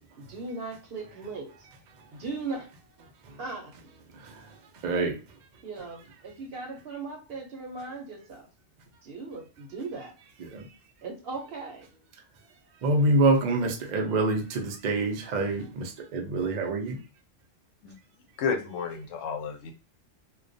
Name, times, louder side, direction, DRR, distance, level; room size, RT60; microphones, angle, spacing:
voice 1, 0.2-1.7 2.1-2.7 3.4-3.7 5.6-8.5 9.0-10.1 11.0-11.9, right 3 dB, 60° right, 0.7 m, -38 dB
voice 2, 4.1-4.5 4.8-5.2 10.4-10.7 12.8-17.0, right 2 dB, 90° right, 0.3 m, -26 dB
voice 3, 18.4-19.7, left 5 dB, 80° left, 0.9 m, -31 dB
2.3 x 2.1 x 2.5 m
omnidirectional pair, 1.3 m